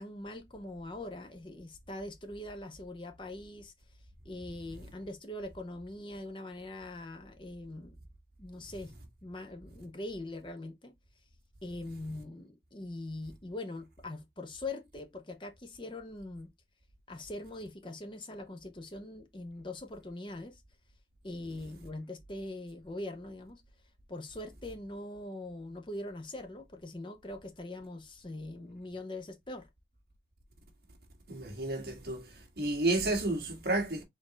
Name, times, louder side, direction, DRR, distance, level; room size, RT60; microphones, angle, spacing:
voice 1, 0.0-3.7 4.2-8.0 8.4-8.9 9.2-10.9 11.6-16.5 17.1-20.6 21.2-23.6 24.1-29.7, left 2 dB, 30° left, 0.7 m, -42 dB
voice 2, 31.3-34.0, right 2 dB, 65° right, 1.6 m, -31 dB
4.4 x 3.7 x 2.9 m
head